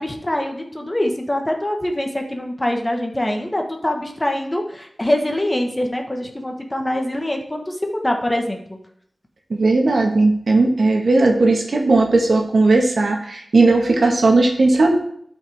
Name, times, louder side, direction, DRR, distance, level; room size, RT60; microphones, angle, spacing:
voice 1, 0.0-8.8, left 1 dB, 20° left, 2 dB, 1.5 m, -24 dB
voice 2, 9.5-15.0, right 3 dB, 75° right, 1 dB, 1.7 m, -16 dB
12.5 x 5.5 x 3.6 m, 0.68 s
wide cardioid pair, 60°, 0 cm